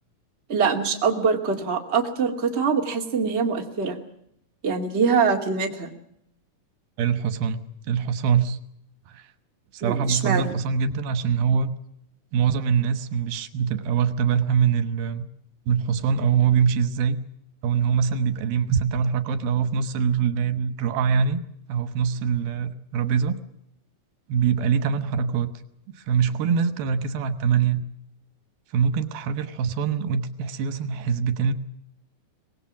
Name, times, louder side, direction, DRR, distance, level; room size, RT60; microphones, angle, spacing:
voice 1, 0.5-4.0 4.6-5.9 9.8-10.5, right 5 dB, 20° right, 2 dB, 2.0 m, -23 dB
voice 2, 7.0-8.6 9.1-9.2 9.7-11.7 12.3-15.2 15.7-17.2 17.6-21.4 21.7-23.4 24.3-25.5 26.0-27.8 28.7-31.5, right 7 dB, 85° right, 11 dB, 3.1 m, -23 dB
24.5 x 19.5 x 7.4 m, 0.73 s
omnidirectional pair, 4.2 m